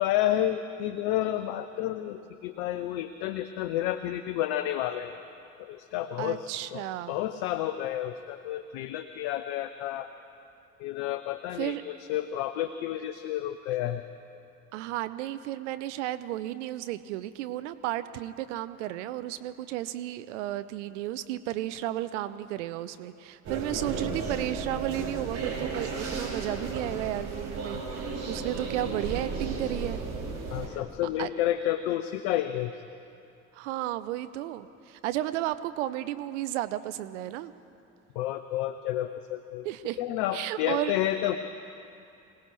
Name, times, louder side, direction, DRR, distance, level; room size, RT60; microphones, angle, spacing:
voice 1, 0.0-5.2 5.6-10.1 10.8-14.0 30.5-32.7 38.2-39.7 40.0-41.4, left 12 dB, 60° left, 11 dB, 0.7 m, -30 dB
voice 2, 6.2-7.2 11.6-11.8 14.7-30.0 31.2-31.3 33.5-37.5 39.6-40.0 40.3-40.9, right 14 dB, 70° right, 12 dB, 0.6 m, -33 dB
sound 1, 23.4-30.7, right 4 dB, 45° right, 4.3 m, -34 dB
26.0 x 17.5 x 3.1 m, 2.7 s
figure-of-eight pair, 55°, 38 cm